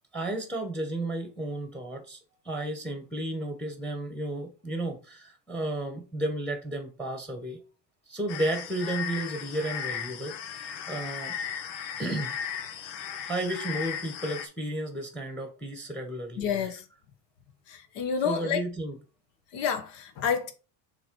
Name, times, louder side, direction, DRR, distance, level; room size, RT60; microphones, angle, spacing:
voice 1, 0.1-2.2 2.4-7.6 8.1-11.4 12.0-12.4 13.3-16.7 18.2-19.0, right 1 dB, ahead, 1.1 m, -33 dB
sound 1, 8.3-14.5, left 8 dB, 85° left, 1.1 m, -36 dB
voice 2, 16.4-16.8 17.7-18.6 19.5-20.5, left 7 dB, 60° left, 1.4 m, -29 dB
7.2 x 3.1 x 4.6 m
cardioid pair, 135°, 49 cm